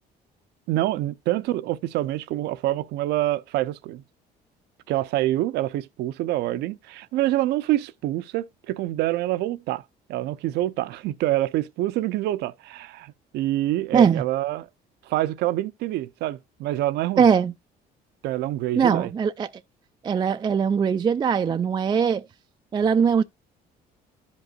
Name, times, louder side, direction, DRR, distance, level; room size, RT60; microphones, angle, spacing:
voice 1, 0.7-4.0 4.9-9.8 10.1-14.7 15.1-17.3 18.2-19.1, right 15 dB, 80° right, 0.6 m, -26 dB
voice 2, 17.2-17.5 18.8-19.5 20.0-22.2 22.7-23.2, right 6 dB, 25° right, 0.3 m, -20 dB
13.0 x 5.3 x 2.3 m
cardioid pair, 110°, 17 cm